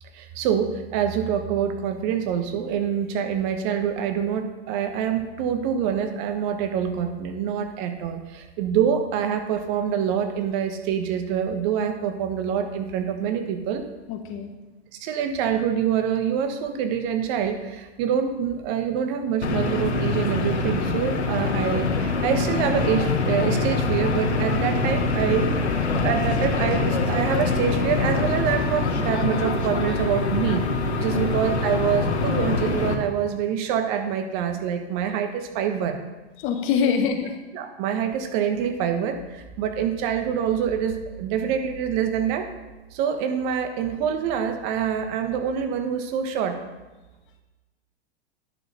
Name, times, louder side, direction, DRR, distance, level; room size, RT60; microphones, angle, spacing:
voice 1, 0.1-13.8 14.9-30.7 31.0-36.0 37.5-42.4 42.9-46.6, right 8 dB, 45° right, 6 dB, 1.4 m, -26 dB
voice 2, 14.1-14.6 31.1-31.2 36.4-37.3, left 7 dB, 40° left, 5 dB, 1.5 m, -24 dB
sound 1, 19.4-32.9, left 3 dB, 85° left, 1.4 m, -24 dB
10.5 x 6.6 x 5.7 m, 1.2 s
hypercardioid pair, 110°, 32 cm